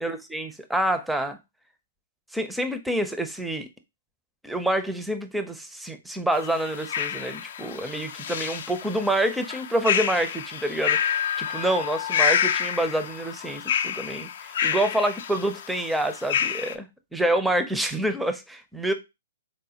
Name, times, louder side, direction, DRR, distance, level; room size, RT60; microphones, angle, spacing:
voice 1, 0.0-1.4 2.3-3.7 4.4-18.9, right 1 dB, 5° right, 0.4 m, -27 dB
sound 1, 6.3-16.7, left 8 dB, 60° left, 0.4 m, -28 dB
4.1 x 2.1 x 2.8 m
hypercardioid pair, 140°, 0 cm